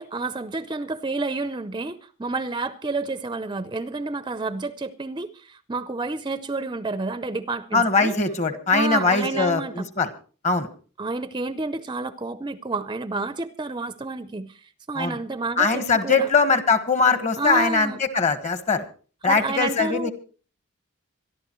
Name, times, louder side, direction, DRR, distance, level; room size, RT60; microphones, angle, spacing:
voice 1, 0.0-8.2 8.7-9.9 11.0-14.6 14.9-16.3 17.4-18.0 19.2-20.1, right 3 dB, 20° right, 0.6 m, -30 dB
voice 2, 7.7-10.1 10.4-10.7 15.0-15.1 15.6-18.8 19.2-20.1, left 4 dB, 35° left, 1.4 m, -21 dB
25.0 x 11.5 x 3.1 m
head